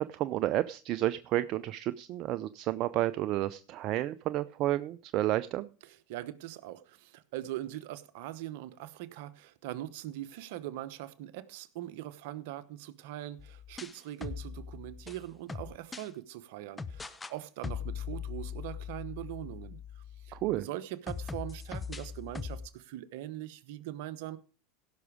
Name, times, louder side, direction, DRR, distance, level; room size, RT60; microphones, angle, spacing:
voice 1, 0.0-5.7 20.3-20.6, right 14 dB, 50° right, 14 dB, 0.5 m, -31 dB
voice 2, 5.8-24.4, right 14 dB, 65° right, 14 dB, 0.9 m, -42 dB
sound 1, 13.4-16.1 16.8-17.3 17.6-20.6 21.1-22.7, left 6 dB, 15° left, 0.8 m, -41 dB
16.5 x 6.1 x 5.0 m, 0.37 s
hypercardioid pair, 95°, 0 cm